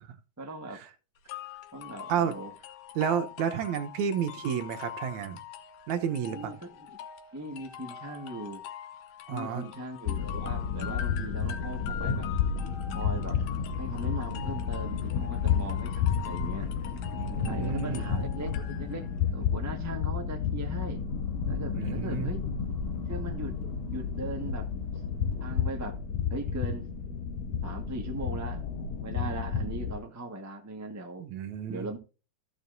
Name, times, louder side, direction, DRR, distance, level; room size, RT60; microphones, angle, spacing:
voice 1, 0.4-0.8 1.7-2.5 6.3-7.0 7.3-8.6 9.3-12.3 12.9-13.4 13.8-16.7 17.4-21.0 21.5-22.4 23.1-24.7 25.4-26.0 26.3-26.9 27.6-31.2 31.7-32.0, right 1 dB, 25° right, 0.3 m, -39 dB
sound 1, 1.3-19.2, left 10 dB, 85° left, 2.7 m, -44 dB
voice 2, 3.0-5.4 5.9-6.5 9.3-9.7 17.2-18.2 21.7-22.3 31.2-31.9, right 8 dB, 75° right, 2.3 m, -31 dB
sound 2, 10.1-30.0, left 7 dB, 70° left, 2.4 m, -31 dB
sound 3, 17.1-25.6, left 5 dB, 35° left, 3.1 m, -44 dB
14.5 x 6.9 x 2.7 m
omnidirectional pair, 3.5 m